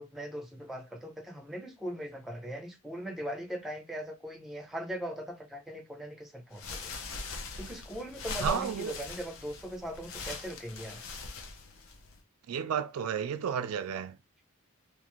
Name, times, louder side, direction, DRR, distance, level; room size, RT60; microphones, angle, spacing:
voice 1, 0.0-6.9 7.6-11.0, right 1 dB, ahead, 0.5 m, -40 dB
sound 1, 6.5-12.2, left 3 dB, 65° left, 0.6 m, -41 dB
voice 2, 8.4-8.9 12.5-14.2, right 7 dB, 80° right, 0.3 m, -32 dB
2.5 x 2.4 x 3.0 m
head